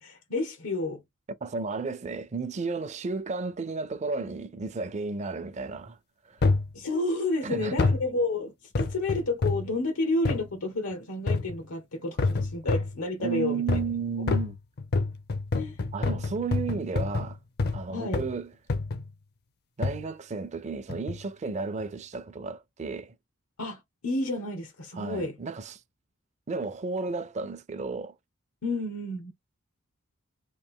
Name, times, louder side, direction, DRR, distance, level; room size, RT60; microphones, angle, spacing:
voice 1, 0.0-1.0 6.7-13.6 15.5-15.8 17.9-18.2 23.6-25.4 28.6-29.3, left 2 dB, 90° left, 1.0 m, -30 dB
voice 2, 1.4-6.0 6.3-6.4 7.4-7.9 13.2-14.5 15.9-17.4 17.7-18.5 19.8-23.1 24.9-25.8 26.5-28.1, right 4 dB, 35° right, 0.4 m, -33 dB
sound 1, 6.4-6.7 7.8-8.1 8.7-9.7 10.2-10.5 11.3-11.6 12.2-13.0 13.7-14.0 14.3-17.8 18.1-18.4 18.7-19.1 19.8-20.0 20.9-21.2 21.8-21.9, left 3 dB, 50° left, 0.5 m, -27 dB
3.2 x 2.6 x 3.6 m
head